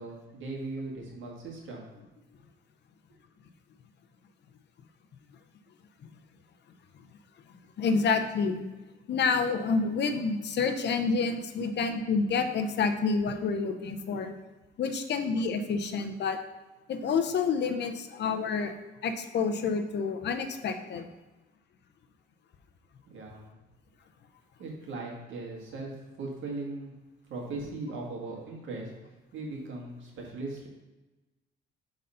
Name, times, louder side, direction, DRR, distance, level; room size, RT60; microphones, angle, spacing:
voice 1, 0.0-1.9 23.1-23.5 24.6-26.9 27.2-28.9 29.3-30.7, right 3 dB, 75° right, -1 dB, 1.7 m, -39 dB
voice 2, 7.8-8.6 9.1-14.3 14.8-16.4 16.9-18.7 19.0-21.1, left 5 dB, 60° left, 7 dB, 0.7 m, -28 dB
5.4 x 4.0 x 5.5 m, 1.1 s
cardioid pair, 90°, 20 cm